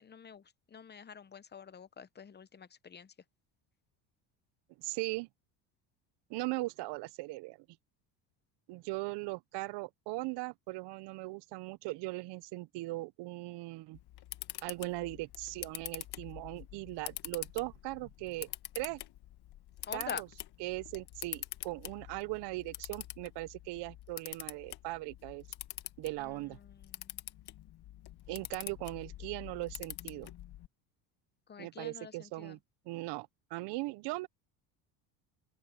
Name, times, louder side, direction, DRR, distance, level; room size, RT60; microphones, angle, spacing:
voice 1, 0.0-3.1 19.9-20.2 26.2-27.2 31.5-32.6, left 7 dB, 20° left, 0.9 m, -47 dB
voice 2, 4.8-5.3 6.3-7.7 8.7-14.0 14.6-18.5 18.7-19.0 19.9-20.3 20.6-25.4 26.0-26.6 28.3-30.3 31.6-32.6 32.9-34.3, right 21 dB, 65° right, 0.7 m, -39 dB
Camera, 13.9-30.7, left 14 dB, 55° left, 1.5 m, -46 dB
open air
supercardioid pair, 105°, 46 cm